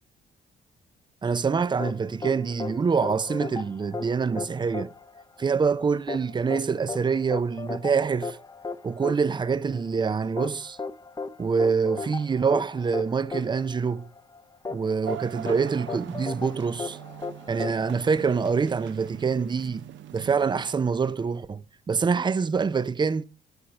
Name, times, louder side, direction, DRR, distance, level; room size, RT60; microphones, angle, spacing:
voice 1, 1.2-4.9 5.4-8.4 8.8-10.8 11.4-14.1 14.7-17.0 17.5-19.8 20.1-23.2, right 5 dB, 25° right, 0.4 m, -25 dB
sound 1, 1.8-18.7, left 4 dB, 20° left, 0.6 m, -36 dB
sound 2, 15.0-20.7, right 12 dB, 70° right, 0.7 m, -42 dB
10.5 x 5.9 x 5.3 m
cardioid pair, 90°, 20 cm